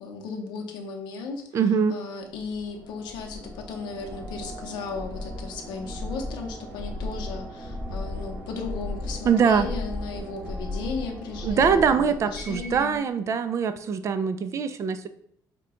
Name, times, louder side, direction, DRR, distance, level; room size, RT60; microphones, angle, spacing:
voice 1, 0.0-1.5 1.9-13.0, left 4 dB, 90° left, 2 dB, 0.7 m, -36 dB
voice 2, 1.5-2.0 9.3-9.7 11.4-15.1, right 6 dB, 40° right, 10 dB, 0.3 m, -23 dB
sound 1, 2.4-13.0, left 1 dB, 20° right, 1.2 m, -36 dB
4.9 x 2.2 x 3.6 m, 0.67 s
cardioid pair, 130°, 8 cm